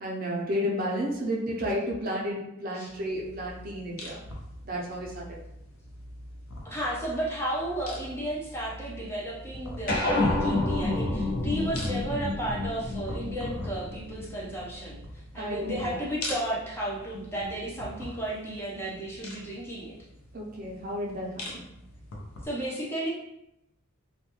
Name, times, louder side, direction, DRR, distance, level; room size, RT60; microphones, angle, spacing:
voice 1, 0.0-4.2 4.7-5.2 15.4-16.0 20.3-21.7, equal, 40° right, -2 dB, 0.4 m, -32 dB
sound 1, 2.9-22.5, left 1 dB, 80° left, 0.6 m, -43 dB
voice 2, 6.6-15.0 15.3-20.0 22.4-23.1, right 1 dB, 10° left, -5 dB, 0.5 m, -33 dB
sound 2, 9.9-14.6, left 2 dB, 45° left, 0.8 m, -28 dB
2.3 x 2.1 x 2.8 m, 0.84 s
head